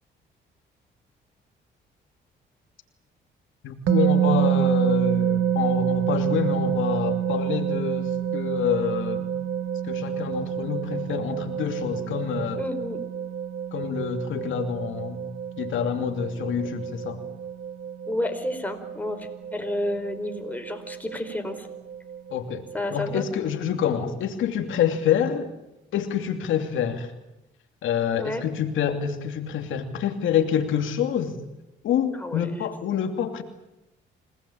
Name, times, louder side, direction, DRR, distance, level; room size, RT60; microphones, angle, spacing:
voice 1, 3.6-9.3 9.8-12.6 13.7-15.2 15.6-17.2 22.3-25.5 25.9-27.1 27.8-31.4 31.8-33.4, left 8 dB, 80° left, 5 dB, 2.7 m, -27 dB
sound 1, 3.9-23.2, right 10 dB, 80° right, 1.7 m, -28 dB
voice 2, 12.6-13.0 18.1-21.7 22.7-23.2 28.1-28.4 32.1-32.7, left 1 dB, 10° left, 5 dB, 4.8 m, -31 dB
27.5 x 19.0 x 8.7 m, 0.91 s
cardioid pair, 90°, 20 cm